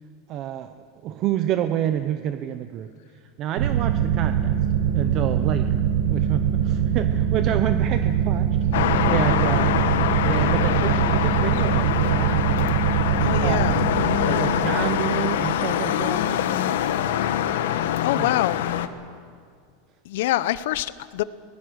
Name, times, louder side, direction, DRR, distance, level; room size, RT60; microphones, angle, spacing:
voice 1, 0.3-0.7 1.0-2.9 3.4-4.6 4.9-5.8 6.1-9.7 10.3-12.4 13.4-13.8 14.2-16.2 18.1-18.3, right 11 dB, 35° right, 9 dB, 0.7 m, -28 dB
sound 1, 3.6-16.8, right 9 dB, 80° right, 1.4 m, -23 dB
sound 2, 8.7-18.9, left 10 dB, 85° left, 1.2 m, -24 dB
voice 2, 13.2-13.9 17.8-18.7 20.0-21.2, left 15 dB, 65° left, 17 dB, 0.8 m, -25 dB
24.5 x 19.0 x 6.4 m, 2.1 s
supercardioid pair, 165°, 0 cm